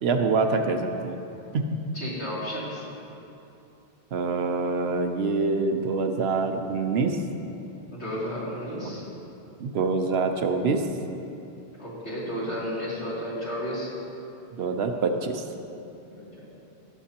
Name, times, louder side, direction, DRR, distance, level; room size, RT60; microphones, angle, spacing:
voice 1, 0.0-1.2 1.5-1.8 4.1-7.2 9.6-10.8 14.5-15.4, right 4 dB, 70° right, 5 dB, 0.9 m, -25 dB
voice 2, 1.9-2.8 7.9-9.0 11.8-13.9 16.1-16.4, equal, 75° left, -9 dB, 3.1 m, -32 dB
19.0 x 7.0 x 2.9 m, 2.8 s
omnidirectional pair, 1.1 m